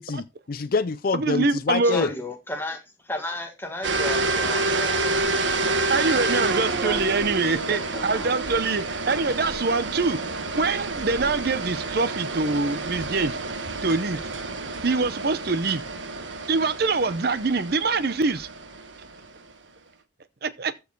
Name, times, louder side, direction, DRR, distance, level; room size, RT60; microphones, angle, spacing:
voice 1, 0.0-2.1, left 4 dB, 50° left, 0.4 m, -26 dB
voice 2, 1.1-2.0 5.9-10.2 10.5-13.4 13.8-14.2 14.8-15.8 16.5-18.5 20.4-20.7, right 3 dB, 55° right, 0.7 m, -24 dB
voice 3, 1.8-7.2 7.5-8.4, left 1 dB, 10° left, 1.9 m, -35 dB
sound 1, 3.8-19.5, right 3 dB, 80° right, 1.4 m, -28 dB
14.0 x 4.8 x 4.6 m
head